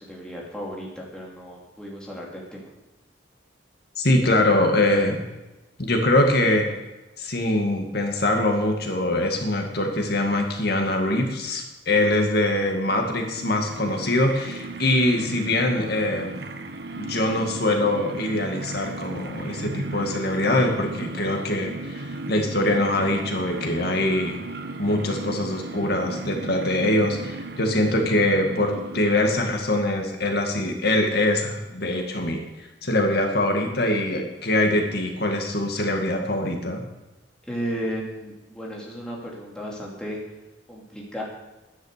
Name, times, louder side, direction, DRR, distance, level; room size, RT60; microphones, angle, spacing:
voice 1, 0.0-2.7 37.5-40.2 40.7-41.2, equal, 5° left, -4 dB, 2.7 m, -34 dB
voice 2, 4.0-5.2 5.8-6.7 7.2-16.4 17.0-24.4 24.8-36.8, left 1 dB, 60° left, 3 dB, 2.1 m, -23 dB
sound 1, 12.7-29.3, right 2 dB, 60° right, 1.1 m, -36 dB
11.5 x 10.5 x 6.7 m, 1.0 s
head